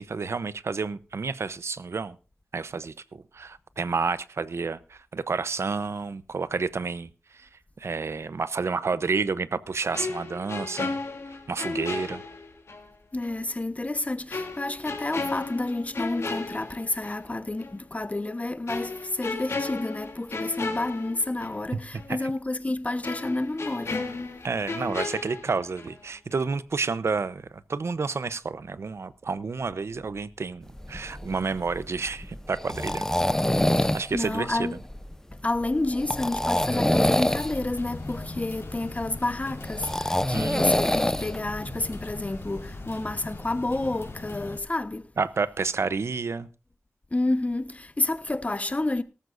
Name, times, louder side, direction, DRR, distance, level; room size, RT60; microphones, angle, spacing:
voice 1, 0.0-2.2 2.5-7.5 7.8-11.0 11.5-12.2 22.1-22.3 24.4-33.1 33.9-34.7 40.3-40.7 45.2-46.5, right 4 dB, 80° right, 0.8 m, -30 dB
sound 1, 9.9-12.9 13.2-13.4 14.3-17.3 17.6-17.8 18.7-21.7 22.0-22.1 23.0-26.1 26.3-26.6, left 3 dB, 85° left, 3.1 m, -34 dB
voice 2, 13.1-24.1 33.8-34.8 35.4-45.1 47.1-49.0, left 2 dB, 30° left, 1.2 m, -30 dB
sound 2, 30.7-42.8, left 1 dB, 10° left, 0.7 m, -27 dB
sound 3, 36.7-44.6, left 2 dB, 65° left, 4.7 m, -40 dB
18.0 x 14.0 x 2.6 m
wide cardioid pair, 60°, 5 cm